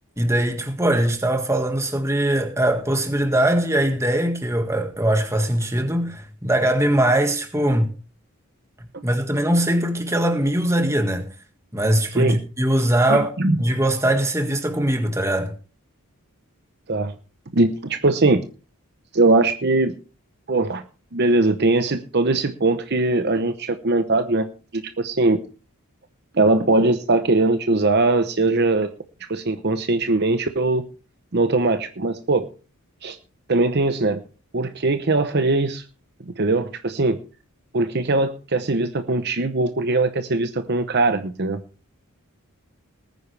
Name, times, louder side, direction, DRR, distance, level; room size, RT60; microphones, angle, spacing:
voice 1, 0.2-7.9 9.0-11.3 11.7-13.3 13.6-15.5, right 1 dB, 15° right, 1.7 m, -21 dB
voice 2, 13.1-13.6 16.9-17.1 17.5-18.4 19.1-19.9 20.5-20.8 21.1-24.5 24.7-25.4 26.3-28.9 29.3-30.8 31.3-32.4 33.0-33.2 33.5-34.2 34.5-35.8 36.3-37.2 37.7-41.6, right 2 dB, 45° right, 0.8 m, -20 dB
19.5 x 9.4 x 3.3 m
head